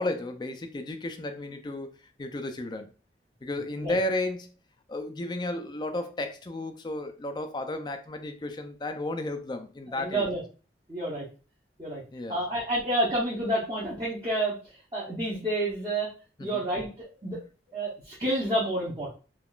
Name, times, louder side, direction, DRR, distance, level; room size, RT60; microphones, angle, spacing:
voice 1, 0.0-1.9 2.2-2.9 3.4-4.5 4.9-10.3 12.1-12.4 16.4-16.6, left 1 dB, 25° left, 7 dB, 0.3 m, -33 dB
voice 2, 9.9-10.4 10.9-11.2 11.8-12.0 12.3-16.1 16.4-17.4 17.7-19.1, right 1 dB, 25° right, -8 dB, 0.7 m, -29 dB
3.5 x 2.4 x 2.3 m, 0.36 s
head